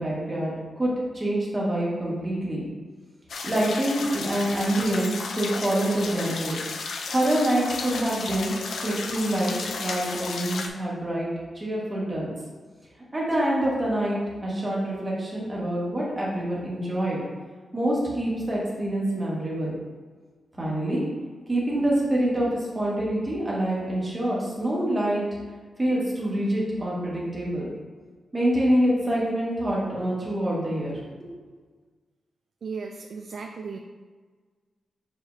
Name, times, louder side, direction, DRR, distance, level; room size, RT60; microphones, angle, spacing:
voice 1, 0.0-2.6 3.4-6.6 7.1-8.5 8.8-11.3 11.5-12.3 13.1-17.2 17.7-19.7 20.5-21.0 21.5-25.2 25.8-27.7 28.3-30.9, right 1 dB, 20° right, -6 dB, 1.6 m, -26 dB
sound 1, 3.3-10.7, left 4 dB, 80° left, 0.6 m, -34 dB
voice 2, 32.6-33.8, right 5 dB, 60° right, 3 dB, 0.4 m, -35 dB
7.0 x 5.0 x 2.7 m, 1.5 s
wide cardioid pair, 160°, 0 cm